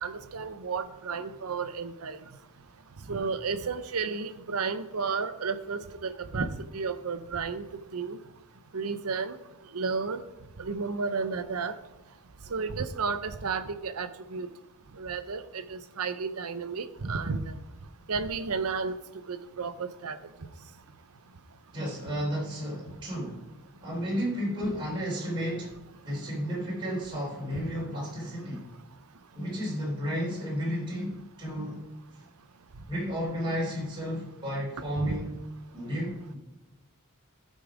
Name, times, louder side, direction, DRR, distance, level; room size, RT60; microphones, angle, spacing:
voice 1, 0.0-2.2 3.1-8.2 8.7-9.4 9.7-10.2 10.6-11.7 12.5-14.5 15.0-17.5 18.1-18.9 19.3-20.2 35.1-35.2, right 5 dB, 75° right, 11 dB, 0.7 m, -32 dB
voice 2, 21.7-23.5 23.8-28.7 29.3-31.8 32.1-32.2 32.9-35.3 35.7-36.4, equal, 20° right, -6 dB, 3.5 m, -32 dB
14.0 x 5.4 x 4.9 m, 1.0 s
head